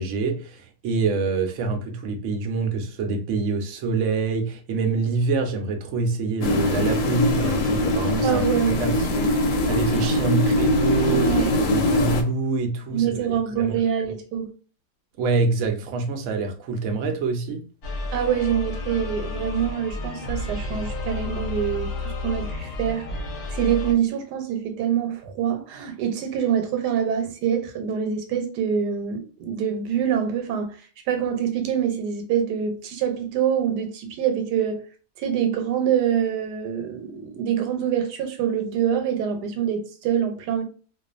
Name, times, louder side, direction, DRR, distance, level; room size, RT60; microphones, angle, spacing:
voice 1, 0.0-8.4 8.8-9.0 9.7-13.1 13.6-13.7 15.2-17.6, right 4 dB, 65° right, 0.7 m, -25 dB
sound 1, 6.4-12.2, left 1 dB, 85° left, 1.2 m, -22 dB
voice 2, 8.2-9.2 10.2-10.4 11.1-11.5 12.9-14.5 18.1-23.1 23.5-30.8 31.1-34.8 35.2-40.6, right 8 dB, 80° right, 1.2 m, -25 dB
sound 2, 17.8-23.9, left 2 dB, 65° left, 1.0 m, -31 dB
2.5 x 2.4 x 2.4 m
omnidirectional pair, 1.7 m